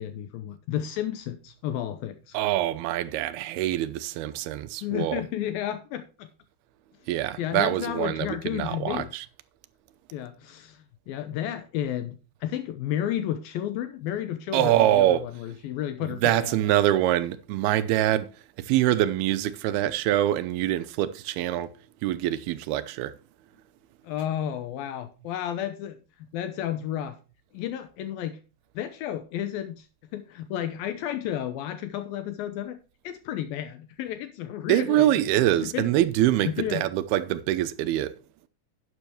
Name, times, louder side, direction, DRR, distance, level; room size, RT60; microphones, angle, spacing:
voice 1, 0.0-2.4 4.8-6.3 7.4-9.1 10.1-16.6 24.0-27.2 27.5-28.4 28.8-29.9 30.1-32.8 33.0-35.9 36.5-36.8, left 11 dB, 80° left, 2.5 m, -32 dB
voice 2, 2.3-5.2 7.1-9.3 14.5-15.2 16.0-18.3 18.6-21.7 22.0-23.1 34.7-38.2, right 13 dB, 90° right, 2.7 m, -24 dB
11.5 x 9.1 x 2.9 m
omnidirectional pair, 4.5 m